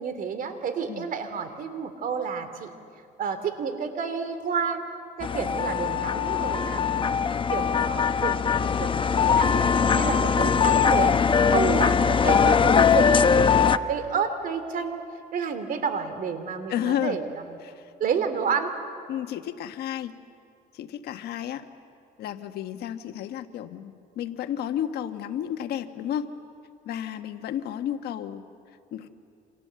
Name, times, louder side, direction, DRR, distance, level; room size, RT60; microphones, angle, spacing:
voice 1, 0.0-2.7 3.2-4.8 5.2-7.2 7.5-11.2 11.5-15.1 15.3-17.6 18.0-18.8, right 6 dB, 55° right, 9 dB, 2.8 m, -30 dB
sound 1, 5.2-13.8, left 6 dB, 30° left, 0.8 m, -21 dB
voice 2, 16.7-17.2 17.6-17.9 19.1-20.1 20.7-21.7 22.2-26.3 26.8-28.4 28.9-29.1, left 10 dB, 70° left, 8 dB, 1.4 m, -32 dB
29.0 x 27.0 x 7.6 m, 2.4 s
cardioid pair, 110°, 17 cm